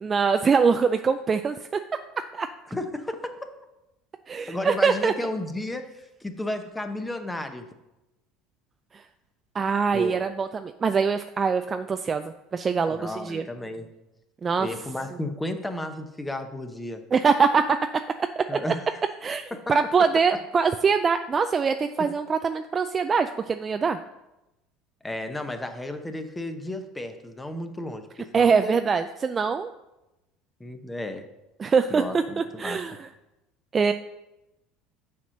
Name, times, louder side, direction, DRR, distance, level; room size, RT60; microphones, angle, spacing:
voice 1, 0.0-1.8 2.3-2.5 4.3-5.1 8.9-9.0 9.5-13.4 14.4-14.7 17.1-17.9 18.4-18.7 19.2-24.0 28.3-29.7 31.6-33.1 33.7-33.9, right 5 dB, 30° right, 8 dB, 0.4 m, -23 dB
voice 2, 2.7-3.3 4.5-7.6 9.9-10.2 12.9-13.9 14.6-17.0 18.5-18.8 25.0-28.1 28.3-28.8 30.6-31.2 31.9-32.8, left 1 dB, 10° left, 7 dB, 0.9 m, -33 dB
7.1 x 4.3 x 6.4 m, 0.96 s
hypercardioid pair, 75°, 0 cm